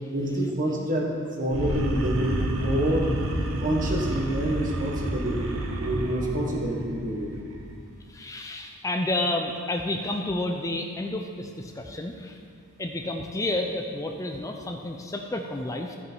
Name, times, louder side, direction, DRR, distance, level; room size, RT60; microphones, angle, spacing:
voice 1, 0.1-1.1 1.4-3.1 3.6-5.5 5.8-7.3, right 1 dB, 40° right, 0 dB, 1.4 m, -27 dB
sound 1, 1.5-7.8, right 1 dB, 80° right, 0.9 m, -30 dB
voice 2, 8.1-12.4 12.8-16.0, left 1 dB, 15° left, 3 dB, 0.4 m, -30 dB
14.0 x 6.2 x 4.5 m, 2.2 s
head